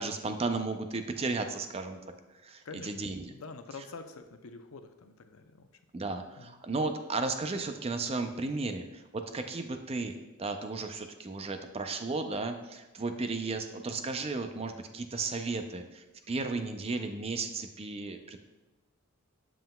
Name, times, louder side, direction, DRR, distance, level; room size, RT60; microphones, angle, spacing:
voice 1, 0.0-2.0 2.4-3.3 5.9-18.4, right 3 dB, 30° right, 7 dB, 0.5 m, -34 dB
voice 2, 3.3-5.7 6.4-6.6, left 4 dB, 85° left, 7 dB, 0.6 m, -46 dB
7.8 x 7.3 x 2.2 m, 1.0 s
head